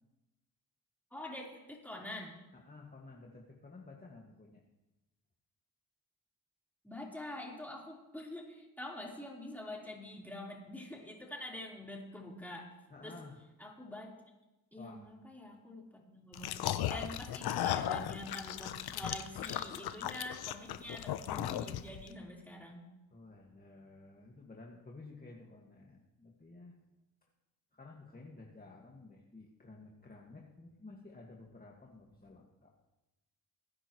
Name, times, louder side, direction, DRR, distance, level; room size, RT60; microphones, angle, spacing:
voice 1, 1.1-2.4 6.8-12.7 13.0-13.2 13.6-14.2 14.7-22.9, left 1 dB, 5° left, -3 dB, 4.1 m, -46 dB
voice 2, 2.6-4.6 12.9-13.4 14.8-15.1 15.5-15.6 23.1-26.7 27.7-32.7, left 3 dB, 25° left, -2 dB, 2.0 m, -53 dB
sound 1, 16.3-22.1, left 11 dB, 80° left, 0.8 m, -36 dB
20.5 x 9.8 x 3.2 m, 1.0 s
cardioid pair, 70°, 37 cm